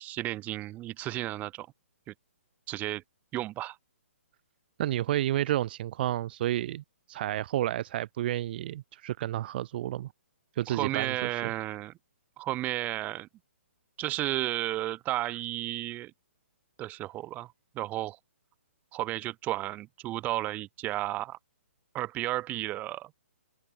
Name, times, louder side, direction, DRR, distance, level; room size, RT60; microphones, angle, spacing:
voice 1, 0.0-1.7 2.1-2.2 2.7-3.0 3.3-3.8 10.7-11.9 12.4-13.3 14.0-16.1 16.8-18.2 18.9-21.4 21.9-23.2, right 16 dB, 20° right, 2.1 m, -33 dB
voice 2, 4.8-6.8 7.1-10.1 10.6-11.5, right 13 dB, 45° right, 1.6 m, -30 dB
hypercardioid pair, 140°, 7 cm